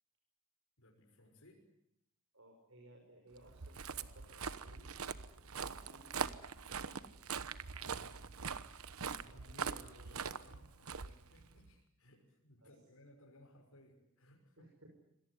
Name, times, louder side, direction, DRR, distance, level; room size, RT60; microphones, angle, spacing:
voice 1, 0.8-1.7 7.8-8.2 9.2-14.7, equal, 85° left, 1 dB, 6.1 m, -61 dB
voice 2, 2.3-4.9 5.3-6.5 9.1-10.2 12.6-12.7 14.6-14.9, right 1 dB, 70° right, 1 dB, 6.1 m, -61 dB
Walk footsteps, 3.4-11.7, right 6 dB, 85° right, 1.1 m, -43 dB
26.0 x 18.5 x 9.8 m, 0.82 s
head